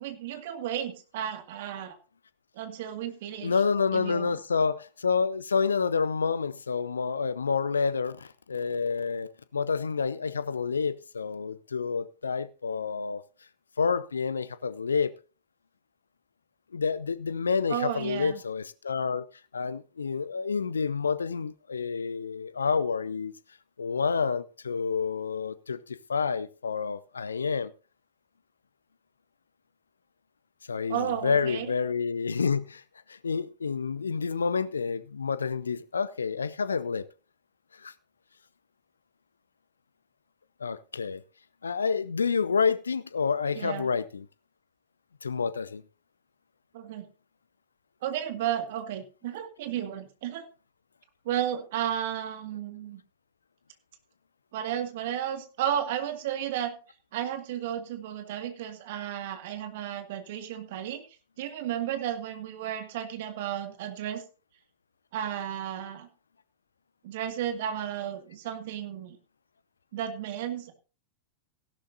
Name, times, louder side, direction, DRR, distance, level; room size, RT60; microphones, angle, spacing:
voice 1, 0.0-2.0 2.6-3.6 3.9-4.4 17.7-18.4 30.9-31.7 43.6-43.9 46.7-47.1 48.0-50.5 51.3-53.0 54.5-56.8 57.1-61.0 61.4-64.2 65.1-66.1 67.0-69.2 69.9-70.7, right 10 dB, 55° right, 2.0 m, -33 dB
voice 2, 3.4-13.2 13.8-15.1 16.7-19.3 19.5-23.3 23.8-27.7 30.7-32.8 33.1-37.0 37.8-37.9 40.6-41.2 41.6-44.3 45.2-45.8, left 5 dB, 75° left, 0.6 m, -29 dB
16.5 x 11.5 x 2.7 m
figure-of-eight pair, 90°, 0 cm